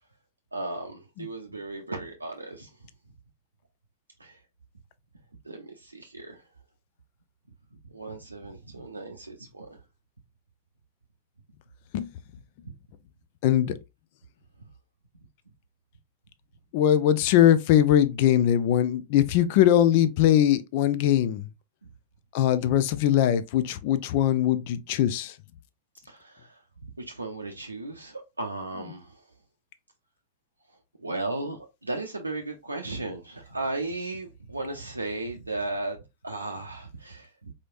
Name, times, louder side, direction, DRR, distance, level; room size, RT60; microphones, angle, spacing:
voice 1, 0.5-2.8 4.2-4.4 5.4-6.4 7.8-9.8 26.0-26.6 27.0-29.2 30.7-36.0 36.2-37.5, right 2 dB, 80° right, 0.5 m, -35 dB
voice 2, 13.4-13.7 16.7-21.4 22.3-25.3, left 11 dB, 50° left, 0.4 m, -21 dB
4.1 x 3.1 x 2.5 m
figure-of-eight pair, 90°, 0 cm